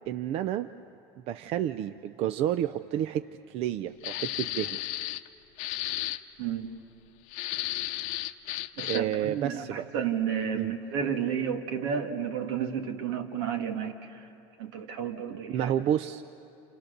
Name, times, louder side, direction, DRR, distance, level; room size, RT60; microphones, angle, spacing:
voice 1, 0.1-0.7 1.3-4.8 8.8-9.8 10.5-10.7 15.5-16.3, right 11 dB, 45° right, 11 dB, 0.5 m, -30 dB
sound 1, 4.0-5.3 5.6-6.2 7.3-9.2, left 15 dB, 60° left, 0.8 m, -33 dB
voice 2, 6.4-6.7 8.8-14.3 14.6-15.7, right 8 dB, 75° right, 4 dB, 2.1 m, -32 dB
28.5 x 27.5 x 6.7 m, 2.7 s
supercardioid pair, 135°, 13 cm